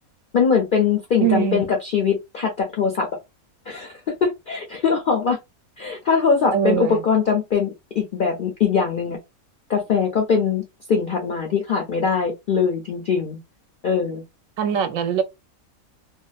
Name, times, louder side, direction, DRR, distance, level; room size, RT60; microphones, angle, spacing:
voice 1, 0.3-3.1 3.7-3.9 4.2-5.4 5.8-9.2 9.7-10.6 10.9-13.4 13.8-14.2, left 6 dB, 70° left, 0.5 m, -21 dB
voice 2, 1.2-1.6 6.5-7.0 14.6-15.2, right 9 dB, 70° right, 0.9 m, -22 dB
2.6 x 2.0 x 2.3 m
omnidirectional pair, 1.5 m